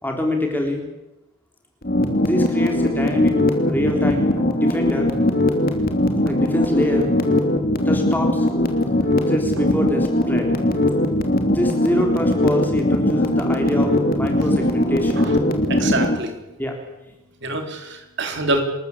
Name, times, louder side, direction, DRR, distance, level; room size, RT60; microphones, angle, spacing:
voice 1, 0.0-0.8 2.2-3.4 3.7-5.1 6.2-7.1 7.8-8.5 9.3-10.5 11.5-15.3 16.6-16.8, left 1 dB, 10° left, 2 dB, 3.7 m, -25 dB
sound 1, 1.8-16.2, left 1 dB, 45° left, 3.0 m, -20 dB
sound 2, 3.7-4.6 6.1-6.8 9.0-9.8, right 1 dB, 80° right, 4.8 m, -38 dB
voice 2, 15.7-16.4 17.4-18.6, right 2 dB, 55° right, 4 dB, 3.7 m, -25 dB
28.5 x 14.0 x 8.6 m, 0.96 s
head